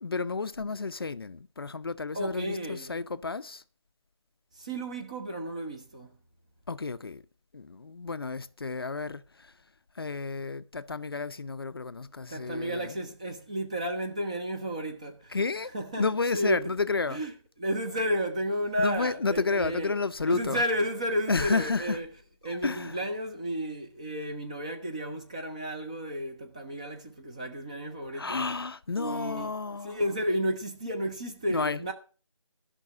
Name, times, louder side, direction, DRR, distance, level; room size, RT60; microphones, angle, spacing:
voice 1, 0.0-3.6 6.7-7.2 7.5-9.5 10.0-13.0 15.3-17.2 18.8-20.6 21.3-22.0 22.6-23.0 28.1-30.0 31.5-31.8, left 4 dB, 45° left, 0.6 m, -31 dB
voice 2, 2.1-3.0 4.5-6.2 12.3-15.4 15.7-16.1 16.3-16.7 17.1-17.3 17.6-20.0 20.3-22.1 22.4-28.4 29.0-31.9, equal, 10° right, 0.6 m, -32 dB
12.5 x 5.9 x 7.3 m
figure-of-eight pair, 170°, 17 cm